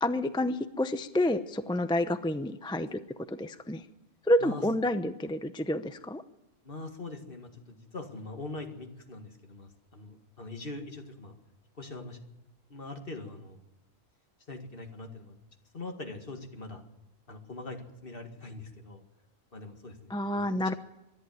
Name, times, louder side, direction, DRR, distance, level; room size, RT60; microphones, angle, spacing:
voice 1, 0.0-3.0 3.3-3.8 4.3-6.2 20.1-20.7, left 1 dB, 5° left, 10 dB, 0.4 m, -29 dB
voice 2, 6.6-11.4 11.8-12.2 12.7-13.6 14.5-15.4 15.7-16.8 17.3-19.0 19.5-20.4, left 2 dB, 45° left, 4 dB, 2.2 m, -42 dB
24.0 x 11.5 x 9.4 m, 0.95 s
omnidirectional pair, 1.4 m